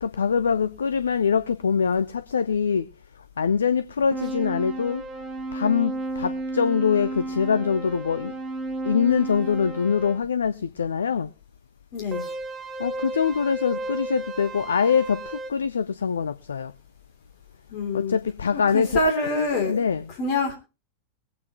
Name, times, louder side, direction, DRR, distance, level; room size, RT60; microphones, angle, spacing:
voice 1, 0.0-2.8 3.4-5.0 5.5-5.9 6.2-8.3 8.9-11.3 12.8-15.2 15.5-16.7 17.9-19.0 19.7-20.0, left 6 dB, 70° left, 0.5 m, -23 dB
sound 1, 4.1-10.2 12.1-15.5, right 2 dB, 20° right, 1.4 m, -33 dB
voice 2, 11.9-12.3 17.7-18.2 18.5-20.5, left 2 dB, 45° left, 3.0 m, -26 dB
22.5 x 8.6 x 3.0 m
figure-of-eight pair, 90°, 0 cm